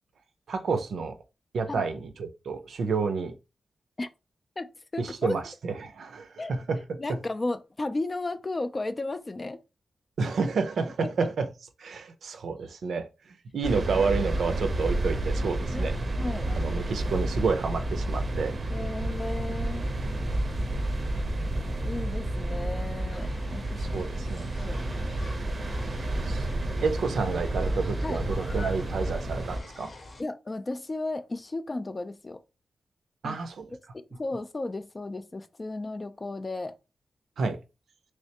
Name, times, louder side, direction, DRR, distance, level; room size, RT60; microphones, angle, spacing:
voice 1, 0.5-1.1 1.5-3.4 5.0-7.0 10.2-11.5 11.8-16.0 16.5-18.5 23.8-24.5 26.1-26.5 26.8-29.9 33.2-33.7 37.4-37.6, right 4 dB, 85° right, 0.5 m, -30 dB
voice 2, 4.6-5.3 6.4-6.5 7.0-9.6 11.0-11.1 15.7-15.9 16.2-16.5 18.7-19.9 21.8-24.0 24.6-24.8 28.0-28.2 30.2-32.4 33.2-33.4 33.9-36.8, left 2 dB, 25° left, 0.3 m, -34 dB
sound 1, 13.6-29.6, right 1 dB, 45° right, 0.6 m, -30 dB
sound 2, 23.1-30.2, left 2 dB, 40° left, 0.7 m, -47 dB
3.2 x 3.2 x 2.8 m
wide cardioid pair, 150°, 0 cm